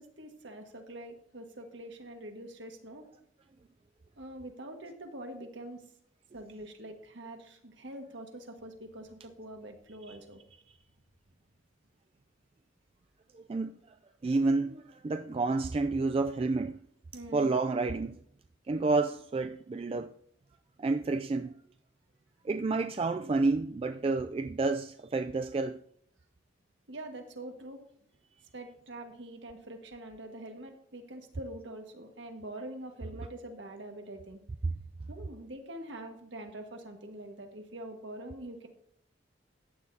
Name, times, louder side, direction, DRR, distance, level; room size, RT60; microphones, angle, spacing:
voice 1, 0.0-3.1 4.2-5.8 6.3-10.4 17.1-17.5 26.9-27.8 28.5-34.4 35.1-38.7, right 1 dB, 65° right, 1.6 m, -44 dB
voice 2, 13.3-14.0 14.2-16.8 17.3-18.2 18.7-20.1 20.8-21.5 22.4-25.8, right 3 dB, 30° right, 0.3 m, -30 dB
14.5 x 9.5 x 2.8 m
head